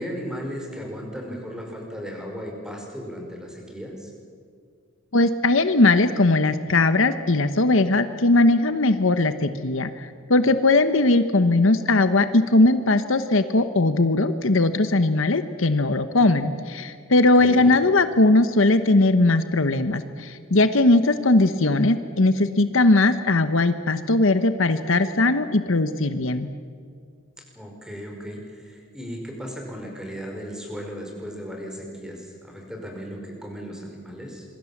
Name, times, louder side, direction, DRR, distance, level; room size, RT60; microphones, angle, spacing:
voice 1, 0.0-4.1 17.4-17.7 27.6-34.4, equal, 5° right, 1 dB, 5.2 m, -36 dB
voice 2, 5.1-26.5, left 2 dB, 65° left, 11 dB, 1.1 m, -19 dB
27.0 x 23.0 x 7.3 m, 2.2 s
head